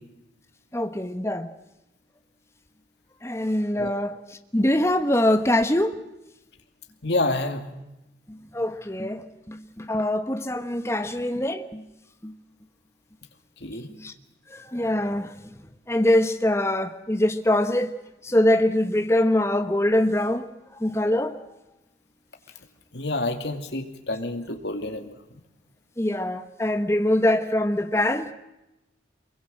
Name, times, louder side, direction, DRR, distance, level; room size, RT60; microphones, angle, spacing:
voice 1, 0.7-1.5 3.2-4.2 4.5-6.0 8.5-11.8 12.2-12.3 14.0-14.1 14.5-15.3 15.9-17.9 18.2-20.5 20.8-21.4 26.0-28.3, left 1 dB, 15° left, 1.1 m, -23 dB
voice 2, 7.0-7.6 13.6-13.9 22.9-25.4, left 2 dB, 70° left, 2.3 m, -28 dB
24.0 x 22.0 x 7.6 m
head